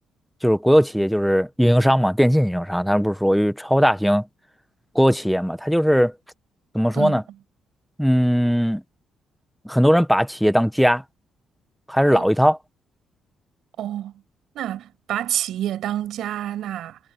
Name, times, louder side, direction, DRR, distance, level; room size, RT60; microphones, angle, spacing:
voice 1, 0.4-4.2 4.9-6.1 6.7-7.2 8.0-8.8 9.6-11.0 11.9-12.6, equal, ahead, 1.6 m, -18 dB
voice 2, 13.8-14.1 14.5-17.0, right 12 dB, 80° right, 6.5 m, -28 dB
cardioid pair, 90°, 0 cm